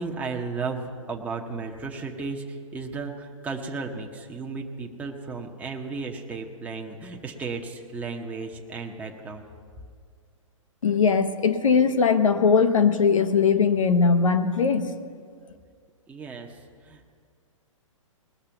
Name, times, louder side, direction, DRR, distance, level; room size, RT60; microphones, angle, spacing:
voice 1, 0.0-9.4 16.1-17.1, right 4 dB, 10° right, 0 dB, 0.9 m, -34 dB
voice 2, 10.8-14.9, left 5 dB, 75° left, 9 dB, 1.0 m, -20 dB
19.5 x 6.6 x 5.8 m, 2.1 s
figure-of-eight pair, 115°, 17 cm